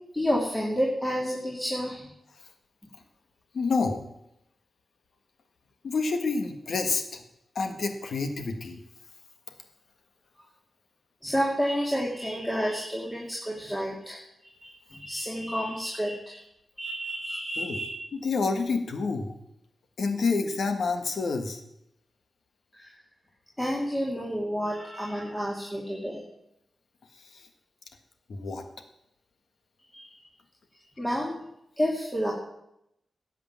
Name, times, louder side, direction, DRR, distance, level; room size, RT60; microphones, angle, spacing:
voice 1, 0.1-2.1 11.2-16.4 16.8-18.0 22.7-22.9 23.6-26.2 29.9-30.1 31.0-31.4 31.8-32.3, equal, 15° left, -3 dB, 2.5 m, -30 dB
voice 2, 3.5-4.0 5.8-7.2 7.6-8.8 17.6-17.8 18.2-19.4 20.0-21.6 27.3-27.5 28.3-28.7, left 4 dB, 75° left, 7 dB, 1.7 m, -28 dB
13.5 x 8.3 x 7.4 m, 0.82 s
wide cardioid pair, 85°, 0 cm